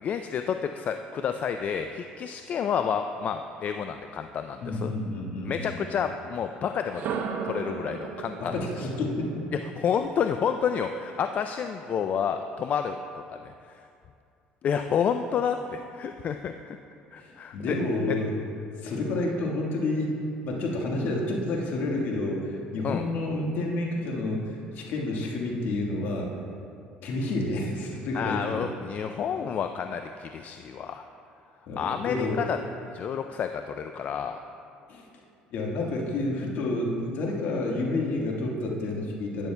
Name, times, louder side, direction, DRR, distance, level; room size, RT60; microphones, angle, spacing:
voice 1, 0.0-4.9 5.4-7.0 7.4-8.5 9.8-13.0 13.4-13.8 14.6-16.8 17.1-17.8 22.8-23.0 28.1-31.1 31.8-32.6 32.9-34.4, left 7 dB, 50° left, 7 dB, 0.3 m, -29 dB
voice 2, 4.6-5.8 8.4-9.4 17.2-18.3 18.8-20.1 20.4-26.3 27.0-28.7 31.7-32.4 34.9-35.0 35.5-39.5, left 2 dB, 65° left, -1 dB, 1.5 m, -29 dB
sound 1, 6.8-10.8, right 6 dB, 60° right, 0.7 m, -36 dB
11.5 x 9.2 x 2.2 m, 2.4 s
supercardioid pair, 85°, 3 cm